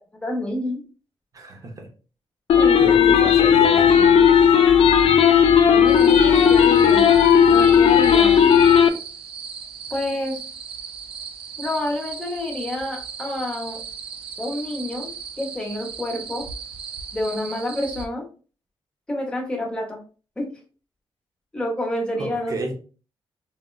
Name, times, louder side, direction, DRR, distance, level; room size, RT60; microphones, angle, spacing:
voice 1, 0.2-0.8 2.5-3.2 5.7-7.1 7.5-8.4 9.9-10.4 11.6-13.8 14.4-16.5 17.1-18.3 19.1-20.0 20.4-20.5 21.5-22.7, left 1 dB, 10° left, -1 dB, 0.8 m, -28 dB
voice 2, 1.3-1.9 2.8-4.3 22.2-22.7, right 2 dB, 35° right, 2 dB, 0.7 m, -31 dB
sound 1, 2.5-8.9, left 8 dB, 90° left, 0.4 m, -14 dB
sound 2, 5.9-18.1, right 6 dB, 75° right, 0.5 m, -37 dB
4.1 x 2.1 x 2.3 m, 0.38 s
wide cardioid pair, 150°, 10 cm